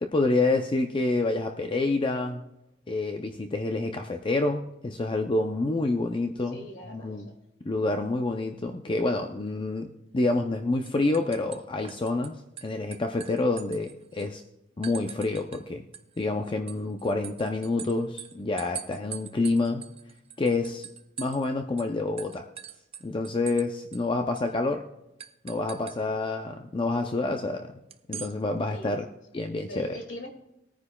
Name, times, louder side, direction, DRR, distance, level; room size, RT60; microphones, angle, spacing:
voice 1, 0.0-2.4 2.9-6.6 6.9-7.3 7.6-12.4 12.6-14.4 14.8-15.9 16.2-19.8 20.4-20.9 21.2-22.5 23.0-24.9 25.4-27.7 28.1-29.0 29.3-29.9, left 2 dB, 25° left, 5 dB, 0.5 m, -28 dB
voice 2, 6.3-7.8 28.7-29.0 29.7-30.3, equal, 70° left, 3 dB, 2.2 m, -42 dB
sound 1, 10.3-10.6 10.9-12.3 12.6-14.3 14.8-15.6 15.9-21.5 21.8-21.9 22.2-23.7 23.9-24.0 24.4-24.5 25.2-26.0 27.9-28.3, right 9 dB, 30° right, 0.5 m, -42 dB
20.0 x 9.7 x 2.3 m, 0.91 s
head